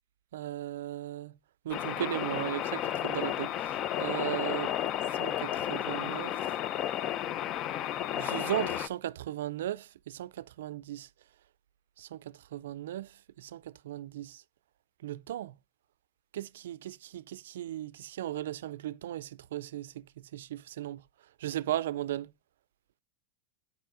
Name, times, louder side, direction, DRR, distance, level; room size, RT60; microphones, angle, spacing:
voice 1, 0.3-1.3 1.7-3.5 4.0-4.7 5.2-6.3 8.2-11.1 12.1-12.2 12.5-13.1 13.5-13.6 13.9-14.3 15.0-15.5 16.3-19.9 20.3-21.0 21.4-22.3, right 13 dB, 85° right, 0.3 m, -36 dB
sound 1, 1.7-8.9, left 11 dB, 45° left, 0.5 m, -32 dB
7.7 x 5.3 x 3.6 m
hypercardioid pair, 110°, 0 cm